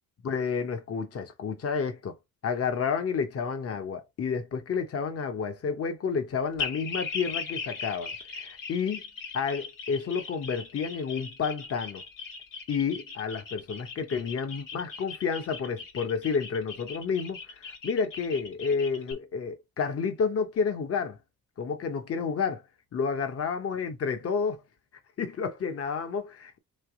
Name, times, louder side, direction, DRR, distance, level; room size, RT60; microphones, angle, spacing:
voice 1, 0.2-2.1 2.4-9.0 9.3-12.0 12.7-21.2 21.6-22.6 22.9-24.6 25.2-26.6, left 5 dB, 40° left, 0.8 m, -30 dB
sound 1, 6.6-19.1, left 5 dB, 60° left, 1.6 m, -39 dB
3.4 x 3.3 x 4.7 m
cardioid pair, 130°, 36 cm